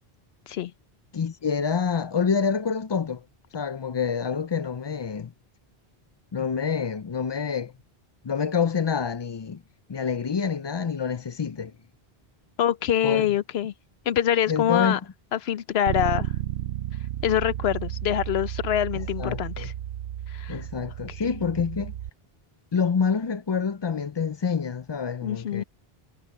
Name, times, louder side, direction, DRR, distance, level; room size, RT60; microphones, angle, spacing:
voice 1, 1.1-3.2 3.5-5.3 6.3-7.7 8.2-9.6 9.9-11.7 13.0-13.3 14.5-15.0 18.9-19.7 20.5-21.9 22.7-25.6, left 6 dB, 40° left, 0.4 m, -27 dB
voice 2, 12.6-13.7 14.1-15.0 15.3-16.3 17.2-19.7 20.3-20.6 25.2-25.6, left 10 dB, 80° left, 0.9 m, -25 dB
Bass guitar, 15.9-22.1, right 12 dB, 80° right, 0.8 m, -32 dB
omnidirectional pair, 1.0 m